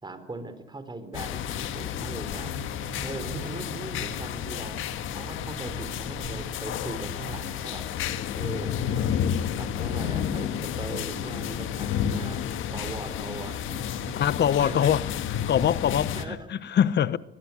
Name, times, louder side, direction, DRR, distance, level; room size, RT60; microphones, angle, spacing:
voice 1, 0.0-2.5 3.0-4.8 5.1-7.8 8.3-9.1 9.6-12.4 12.7-15.0 15.9-16.5, right 2 dB, 20° right, 4.1 m, -40 dB
sound 1, 1.1-16.2, left 9 dB, 85° left, 1.7 m, -31 dB
sound 2, 2.3-7.5, right 5 dB, 55° right, 3.5 m, -44 dB
voice 2, 14.2-17.2, left 9 dB, 60° left, 1.0 m, -24 dB
23.0 x 19.5 x 8.5 m
cardioid pair, 90°, 20 cm